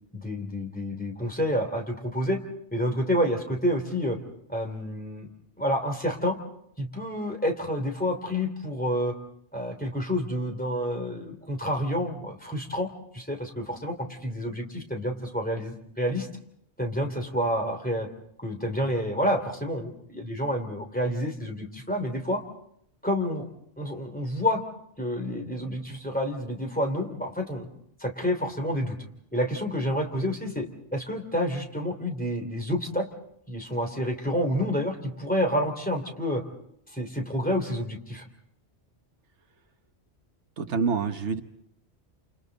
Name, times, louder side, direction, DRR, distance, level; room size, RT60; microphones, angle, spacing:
voice 1, 0.1-2.4 2.7-4.2 4.5-5.3 5.6-6.4 6.8-9.1 9.5-12.9 13.1-16.3 16.8-18.1 18.4-22.4 23.0-23.4 23.8-24.6 25.0-27.7 28.0-28.9 29.3-30.7 30.9-33.1 33.5-36.4 36.9-38.2, equal, 10° left, 2 dB, 3.0 m, -29 dB
voice 2, 40.6-41.4, right 5 dB, 85° right, 7 dB, 1.5 m, -27 dB
29.5 x 28.5 x 4.0 m, 0.73 s
omnidirectional pair, 1.1 m